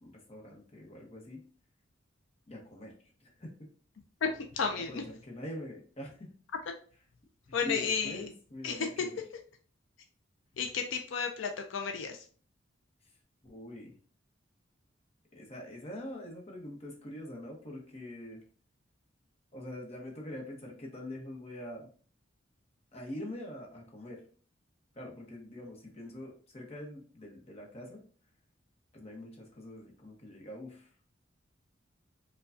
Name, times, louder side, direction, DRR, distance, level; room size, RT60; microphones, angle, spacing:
voice 1, 0.0-1.4 2.5-2.9 3.2-3.5 4.9-6.3 7.5-9.2 13.4-13.9 15.3-18.4 19.5-21.9 22.9-24.2 24.9-28.0 28.9-30.9, left 1 dB, 35° left, 0 dB, 0.9 m, -44 dB
voice 2, 4.5-5.0 7.5-8.2 8.6-8.8 10.6-12.2, left 6 dB, 80° left, 4 dB, 0.4 m, -32 dB
4.5 x 2.3 x 2.5 m, 0.42 s
head